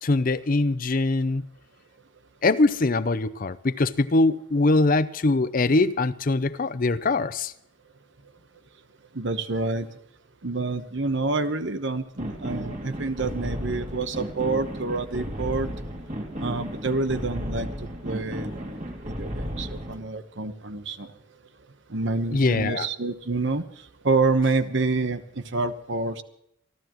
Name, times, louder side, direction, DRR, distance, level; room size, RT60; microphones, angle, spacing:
voice 1, 0.0-1.4 2.4-7.5 22.3-22.9, left 2 dB, 45° left, 0.6 m, -22 dB
voice 2, 9.1-9.9 10.4-15.7 16.4-17.7 18.0-18.7 19.0-21.1 21.9-23.6 24.0-26.2, right 3 dB, 60° right, 1.0 m, -27 dB
sound 1, 12.2-20.0, equal, 40° right, 2.6 m, -34 dB
27.5 x 12.5 x 3.0 m
head